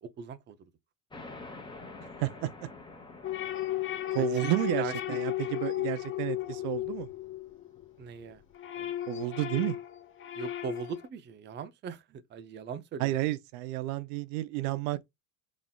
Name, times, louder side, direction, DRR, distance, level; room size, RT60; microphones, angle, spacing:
voice 1, 0.0-0.7 4.2-5.2 8.0-8.4 10.3-13.1, right 6 dB, 25° right, 0.5 m, -40 dB
sound 1, 1.1-8.3, left 3 dB, 10° left, 1.1 m, -49 dB
voice 2, 2.2-2.5 4.1-7.1 8.8-9.8 13.0-15.1, right 15 dB, 70° right, 0.6 m, -31 dB
sound 2, 3.2-7.9 8.3-11.1, left 13 dB, 30° left, 0.5 m, -35 dB
4.1 x 3.6 x 2.3 m
supercardioid pair, 120°, 45 cm